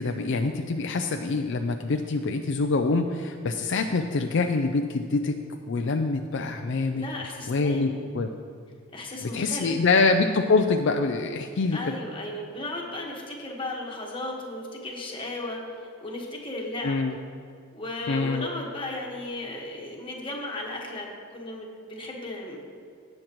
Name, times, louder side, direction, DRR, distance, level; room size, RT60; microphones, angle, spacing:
voice 1, 0.0-5.4 5.7-7.0 7.5-8.3 9.2-11.8 16.8-17.2 18.1-18.5, left 3 dB, 60° left, 5 dB, 0.4 m, -25 dB
voice 2, 6.9-8.0 8.9-9.7 11.7-17.0 17.7-22.6, left 2 dB, 25° left, -1 dB, 1.4 m, -35 dB
18.0 x 6.5 x 3.0 m, 2.3 s
head